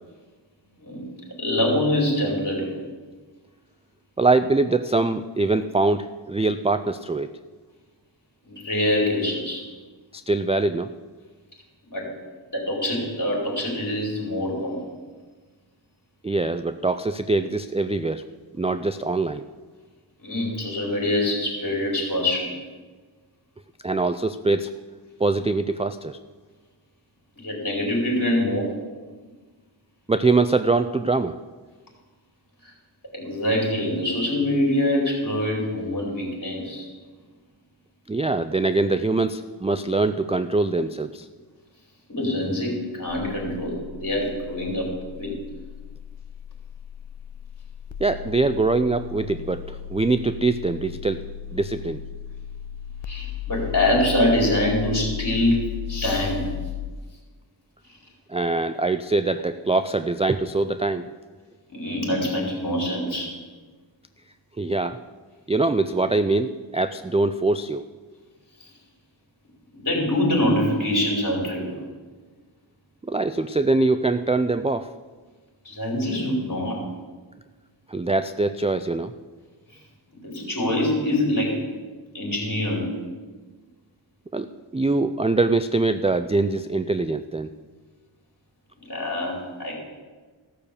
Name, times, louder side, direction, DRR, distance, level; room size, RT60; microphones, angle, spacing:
voice 1, 0.7-1.1 1.4-2.8 8.4-9.6 11.9-12.1 12.5-14.8 20.2-22.6 27.4-28.7 32.6-32.7 33.1-36.9 42.1-45.3 53.0-56.5 57.9-58.0 61.7-63.3 68.6-68.7 69.7-71.8 75.6-76.9 79.7-79.8 80.2-81.6 82.1-82.9 88.8-89.7, left 1 dB, 40° left, -3 dB, 4.8 m, -25 dB
voice 2, 4.2-7.3 10.1-10.9 16.2-18.2 18.6-19.4 23.8-24.7 25.2-26.2 30.1-31.3 38.1-41.3 48.0-51.2 51.5-52.0 58.3-61.0 64.6-65.0 65.5-67.8 73.1-74.9 77.9-79.1 84.3-87.5, right 3 dB, 15° right, 11 dB, 0.3 m, -23 dB
sound 1, 43.1-56.9, left 11 dB, 70° left, 0.6 m, -36 dB
15.5 x 6.7 x 7.1 m, 1.4 s
wide cardioid pair, 80°, 47 cm